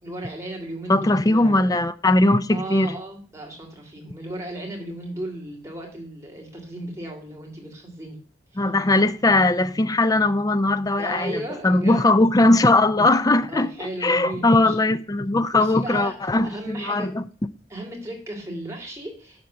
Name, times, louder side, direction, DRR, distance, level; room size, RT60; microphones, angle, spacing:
voice 1, 0.0-1.7 2.5-8.2 8.5-8.6 11.0-12.0 13.5-14.8 15.5-16.2 16.4-17.1 17.7-19.5, right 1 dB, 15° right, 3.1 m, -35 dB
voice 2, 0.9-3.0 8.6-17.2, left 2 dB, 20° left, 0.5 m, -20 dB
11.5 x 4.2 x 7.6 m
head